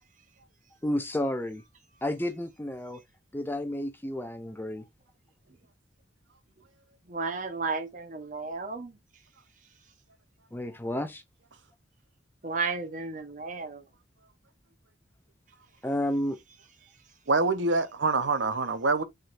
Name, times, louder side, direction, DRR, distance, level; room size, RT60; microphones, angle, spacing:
voice 1, 0.8-1.6 2.0-3.0 3.3-4.8 10.5-11.2 15.8-16.4, left 1 dB, 10° left, 0.5 m, -31 dB
voice 2, 7.1-8.9 12.4-13.8, right 4 dB, 45° right, 1.0 m, -33 dB
voice 3, 17.3-19.0, right 3 dB, 85° right, 0.9 m, -25 dB
5.4 x 3.8 x 2.5 m
head